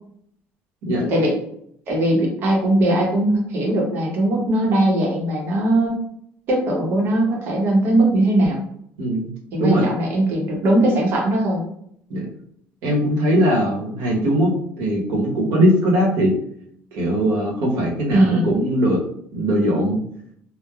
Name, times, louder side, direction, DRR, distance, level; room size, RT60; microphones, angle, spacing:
voice 1, 0.8-1.1 9.0-9.3 9.6-9.8 12.1-12.3 12.8-16.4 16.9-19.0 19.3-20.0, equal, 75° right, -2 dB, 1.0 m, -20 dB
voice 2, 1.9-6.0 6.5-8.6 9.5-11.6 18.1-18.5, right 1 dB, 45° right, -1 dB, 0.8 m, -19 dB
3.2 x 2.1 x 2.3 m, 0.68 s
cardioid pair, 175°, 5 cm